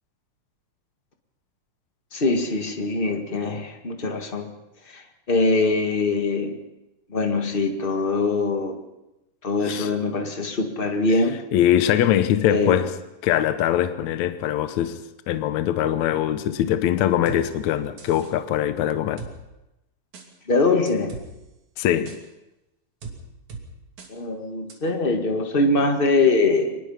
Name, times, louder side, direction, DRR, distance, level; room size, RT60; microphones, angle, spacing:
voice 1, 2.1-4.5 4.9-6.6 7.1-8.8 9.4-11.4 12.5-12.8 20.5-21.2 24.1-26.8, left 3 dB, 25° left, 4 dB, 1.4 m, -23 dB
voice 2, 11.5-12.9 13.2-15.0 15.3-19.2 21.8-22.2, left 11 dB, 70° left, 11 dB, 2.0 m, -22 dB
sound 1, 17.3-17.4 18.0-18.3 19.2-19.3 20.1-20.3 20.9-21.3 22.1-22.2 23.0-23.2 23.5-23.6 24.0-24.1 24.7-24.8, right 5 dB, 65° right, 4.1 m, -38 dB
24.0 x 20.5 x 5.7 m, 0.94 s
omnidirectional pair, 3.7 m